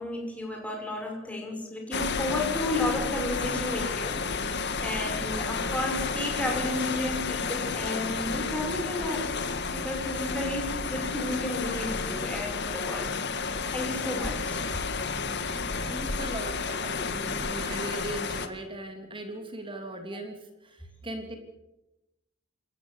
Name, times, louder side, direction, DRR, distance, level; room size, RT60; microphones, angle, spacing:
voice 1, 0.0-9.4 9.7-13.2 13.4-14.8, left 1 dB, 5° left, 1 dB, 6.1 m, -33 dB
sound 1, 1.9-18.5, left 4 dB, 55° left, 1.9 m, -31 dB
voice 2, 15.5-21.4, right 1 dB, 25° right, 5 dB, 3.1 m, -39 dB
27.5 x 15.0 x 8.3 m, 0.94 s
head